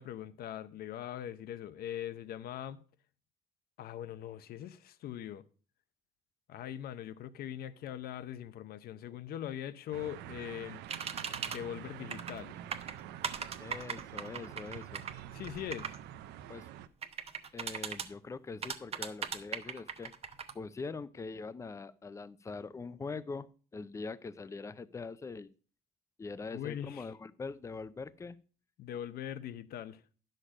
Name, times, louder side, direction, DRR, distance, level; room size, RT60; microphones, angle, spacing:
voice 1, 0.0-2.8 3.8-5.4 6.5-10.8 11.4-12.6 15.3-15.9 26.5-27.1 28.8-30.0, left 11 dB, 65° left, 0.7 m, -41 dB
sound 1, 9.9-16.9, right 11 dB, 85° right, 0.7 m, -47 dB
sound 2, 10.9-11.6 12.1-12.4 12.7-16.0 17.0-18.1 18.6-20.5, right 6 dB, 35° right, 0.9 m, -38 dB
voice 2, 13.6-15.1 16.5-16.7 17.5-20.1 20.5-25.5 26.2-28.4, left 4 dB, 15° left, 0.5 m, -43 dB
10.0 x 6.6 x 5.0 m
cardioid pair, 110°, 17 cm